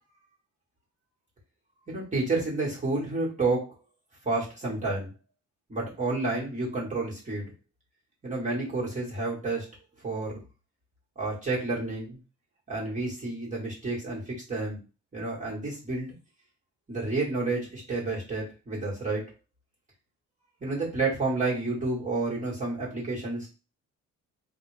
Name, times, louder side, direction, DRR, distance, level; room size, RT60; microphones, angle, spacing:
voice 1, 1.9-3.7 4.2-5.1 5.7-7.5 8.2-9.7 10.0-10.4 11.2-12.2 12.7-14.8 15.1-16.1 16.9-19.3 20.6-23.5, right 3 dB, 25° right, -5 dB, 2.1 m, -30 dB
3.8 x 2.6 x 3.5 m, 0.31 s
cardioid pair, 90°, 30 cm